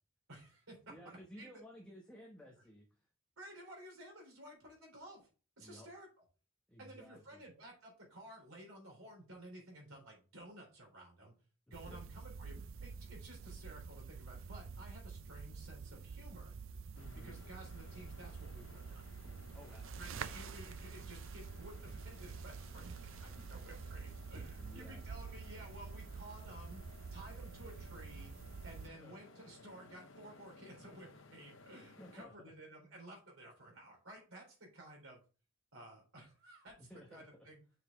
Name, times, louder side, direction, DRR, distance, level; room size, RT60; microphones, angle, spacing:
voice 1, 0.3-1.5 3.4-5.3 5.6-6.1 6.8-11.3 11.7-16.5 17.2-19.1 20.0-22.8 23.2-26.8 27.1-28.3 28.6-35.2 35.7-37.6, right 1 dB, 85° right, 0 dB, 3.8 m, -54 dB
voice 2, 0.9-3.1 5.6-5.9 6.7-7.4 11.8-12.0 17.0-17.4 19.5-20.3 24.6-25.0 28.6-29.2 31.9-32.5 36.8-37.5, equal, 5° left, -2 dB, 1.0 m, -56 dB
sound 1, 11.7-28.9, right 5 dB, 70° right, 0.4 m, -48 dB
sound 2, 16.9-32.3, left 3 dB, 65° left, 0.7 m, -59 dB
6.8 x 4.9 x 3.6 m, 0.35 s
head